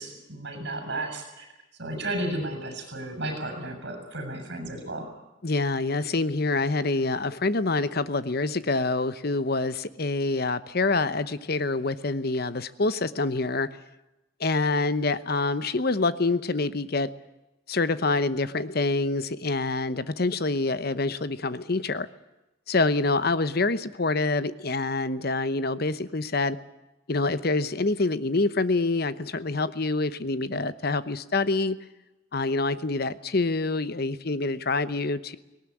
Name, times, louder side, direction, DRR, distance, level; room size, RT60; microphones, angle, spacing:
voice 1, 0.0-1.5 1.7-5.1, right 1 dB, 55° right, 5 dB, 7.5 m, -33 dB
voice 2, 5.4-13.7 14.4-17.1 17.7-22.1 22.7-26.6 27.1-31.8 32.3-35.4, left 3 dB, 50° left, 14 dB, 0.9 m, -26 dB
19.0 x 18.5 x 9.9 m, 0.99 s
head